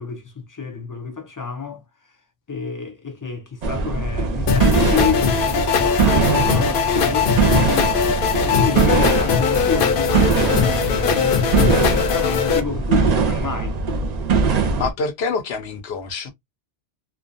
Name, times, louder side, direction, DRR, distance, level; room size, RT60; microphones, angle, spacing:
voice 1, 0.0-1.8 2.5-8.0 8.5-13.8, left 6 dB, 35° left, 0.3 m, -29 dB
sound 1, 3.6-14.9, right 5 dB, 50° right, 0.6 m, -21 dB
sound 2, 4.5-12.6, left 7 dB, 65° left, 0.7 m, -20 dB
Thunder, 5.7-13.4 13.7-13.8 14.2-14.3, equal, 5° right, 0.6 m, -41 dB
voice 2, 14.8-16.3, left 4 dB, 90° left, 1.0 m, -26 dB
2.5 x 2.2 x 2.5 m
omnidirectional pair, 1.0 m